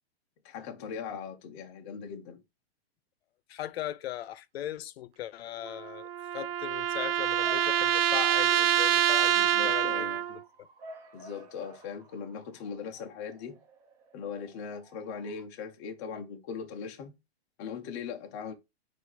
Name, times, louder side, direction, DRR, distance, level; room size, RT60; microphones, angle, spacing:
voice 1, 0.4-2.4 9.3-10.2 11.1-13.6 14.1-17.1 17.6-18.5, left 6 dB, 15° left, 0.3 m, -39 dB
voice 2, 3.5-6.1 6.3-10.4, left 12 dB, 70° left, 0.5 m, -38 dB
sound 1, 5.7-10.4, right 12 dB, 65° right, 0.5 m, -26 dB
Bark / Motor vehicle (road) / Siren, 6.7-15.4, right 2 dB, 40° right, 1.1 m, -53 dB
4.4 x 2.4 x 3.9 m
hypercardioid pair, 145°, 32 cm